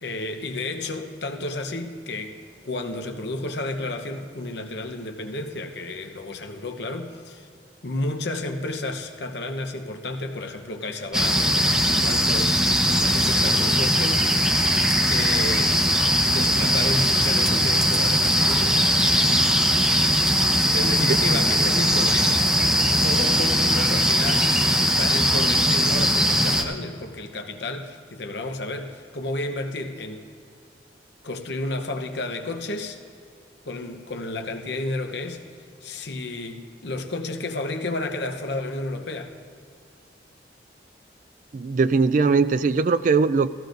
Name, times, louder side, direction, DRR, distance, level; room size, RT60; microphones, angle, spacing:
voice 1, 0.0-7.5 7.8-14.3 15.1-15.8 16.3-18.8 20.7-22.4 23.0-30.3 31.2-33.0 33.6-35.4 35.8-39.3, left 2 dB, 65° left, 5 dB, 0.9 m, -32 dB
sound 1, 11.1-26.6, equal, 5° right, 0.7 m, -20 dB
voice 2, 41.5-43.5, right 4 dB, 45° right, 14 dB, 0.3 m, -20 dB
17.5 x 15.0 x 2.6 m, 2.3 s
head